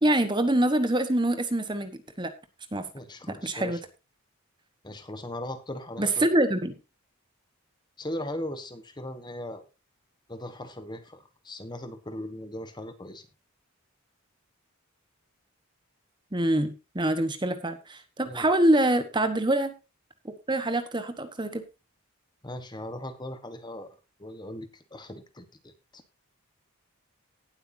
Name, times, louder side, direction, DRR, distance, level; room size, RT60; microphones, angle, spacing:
voice 1, 0.0-2.3 2.7-2.9 3.3-3.8 6.0-6.7 16.3-19.7 20.2-21.6, right 1 dB, 20° right, 10 dB, 1.1 m, -25 dB
voice 2, 2.9-3.8 4.8-6.3 8.0-9.6 10.3-13.2 18.2-18.5 22.4-26.0, left 1 dB, 20° left, 9 dB, 1.2 m, -39 dB
18.5 x 8.0 x 2.7 m, 0.27 s
head